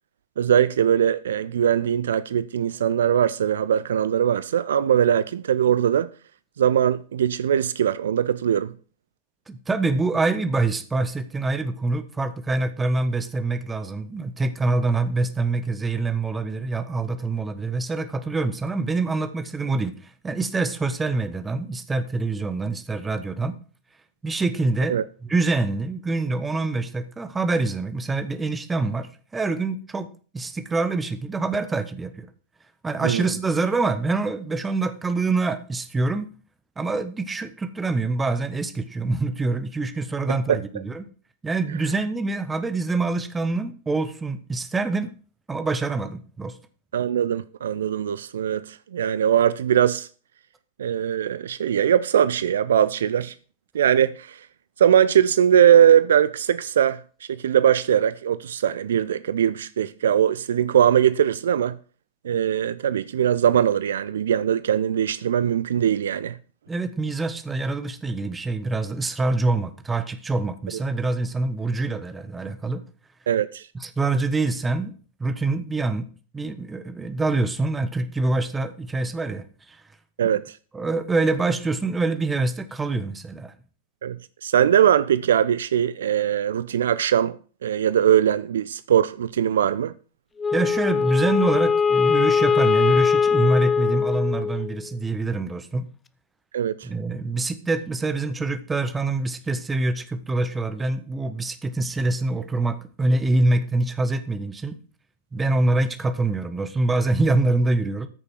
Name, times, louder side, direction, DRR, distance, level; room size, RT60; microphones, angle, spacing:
voice 1, 0.4-6.1 6.6-8.7 24.9-25.0 33.0-33.3 40.3-40.6 46.9-50.1 50.8-53.3 53.7-54.5 54.8-57.0 57.3-61.8 62.2-66.4 73.3-73.7 80.2-80.6 84.0-89.9 96.5-96.9, right 9 dB, 65° right, 0.4 m, -21 dB
voice 2, 9.5-23.5 24.2-32.3 32.8-36.3 36.8-41.1 41.4-45.1 45.5-46.6 66.7-72.8 73.7-74.9 75.2-76.1 76.3-79.8 80.2-80.4 80.7-83.5 90.5-95.9 96.8-104.7 105.3-108.1, right 3 dB, 15° right, 1.3 m, -25 dB
Wind instrument woodwind instrument, 90.4-94.8, left 6 dB, 15° left, 0.6 m, -21 dB
13.5 x 6.5 x 6.0 m
figure-of-eight pair, 90°, 0 cm